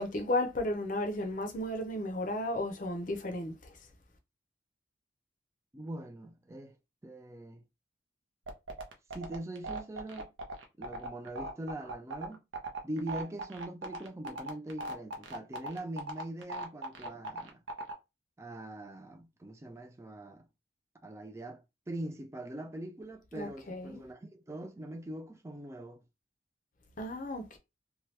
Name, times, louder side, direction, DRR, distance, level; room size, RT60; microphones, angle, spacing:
voice 1, 0.0-3.7 23.3-24.0 27.0-27.6, left 1 dB, 40° left, 0.6 m, -34 dB
voice 2, 5.7-6.8 7.0-7.6 9.1-10.3 10.8-12.4 12.8-17.6 18.4-20.5 21.0-26.0, right 1 dB, 15° right, 0.3 m, -42 dB
sound 1, 8.5-17.9, right 2 dB, 85° right, 0.7 m, -38 dB
2.8 x 2.3 x 3.2 m
head